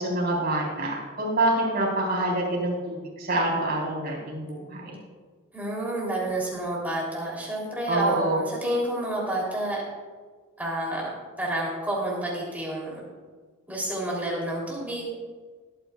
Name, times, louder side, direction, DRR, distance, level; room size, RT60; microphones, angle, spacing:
voice 1, 0.0-5.0 7.9-8.4, right 1 dB, 45° right, -3 dB, 3.9 m, -26 dB
voice 2, 5.5-9.8 10.6-11.1 11.4-12.9 13.7-15.0, right 1 dB, 10° right, -4 dB, 3.1 m, -29 dB
21.0 x 9.1 x 2.4 m, 1.5 s
head